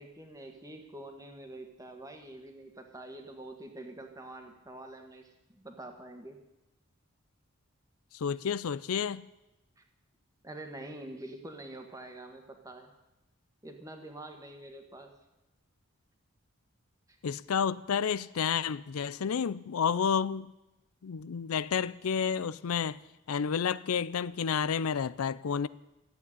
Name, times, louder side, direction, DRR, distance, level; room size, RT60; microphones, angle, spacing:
voice 1, 0.0-6.4 9.8-9.9 10.4-12.9 13.6-15.1, right 1 dB, 15° right, 1.6 m, -46 dB
voice 2, 8.1-9.2 17.2-20.5 21.0-23.0 23.3-25.7, left 7 dB, 85° left, 0.5 m, -30 dB
13.5 x 8.4 x 9.9 m
head